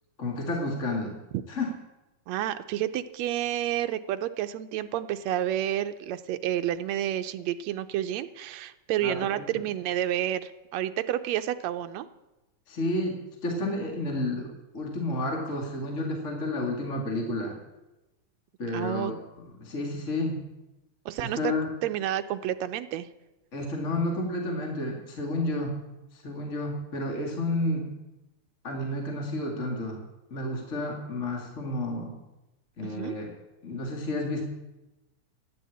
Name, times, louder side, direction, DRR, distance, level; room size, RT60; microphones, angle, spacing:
voice 1, 0.2-1.1 1.5-1.7 9.0-9.6 12.7-17.6 18.6-19.2 19.6-20.4 21.2-21.7 23.5-25.8 26.1-27.9 28.6-30.0 30.3-32.2 32.8-33.3 33.6-34.4, left 1 dB, 25° left, 0 dB, 2.2 m, -31 dB
voice 2, 2.3-12.1 18.7-19.1 21.1-21.5 21.8-23.1 32.8-33.1, right 12 dB, 75° right, 10 dB, 1.8 m, -30 dB
14.0 x 10.5 x 8.5 m, 1.0 s
omnidirectional pair, 3.4 m